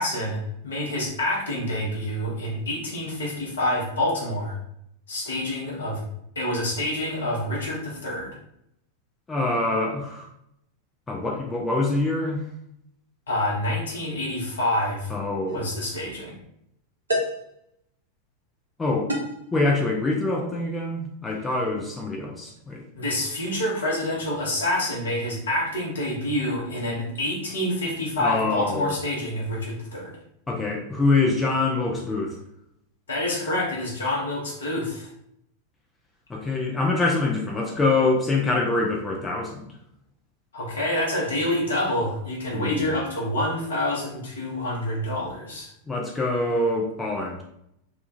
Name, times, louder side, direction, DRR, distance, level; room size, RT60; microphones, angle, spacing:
voice 1, 0.0-4.6 5.1-6.0 6.3-8.3 13.3-15.1 15.5-16.4 22.9-30.1 33.1-35.1 40.5-45.7, left 1 dB, 70° left, -4 dB, 1.0 m, -27 dB
voice 2, 9.3-10.3 11.1-12.4 15.1-15.7 18.8-19.1 19.5-22.8 28.2-29.0 30.5-32.4 36.3-39.7 42.5-43.0 45.9-47.4, left 2 dB, 15° left, -1 dB, 0.5 m, -25 dB
sound 1, 15.5-15.7 17.1-17.5 19.1-19.5, equal, 75° right, 0.7 m, -28 dB
2.9 x 2.3 x 2.6 m, 0.76 s
figure-of-eight pair, 90°, 0 cm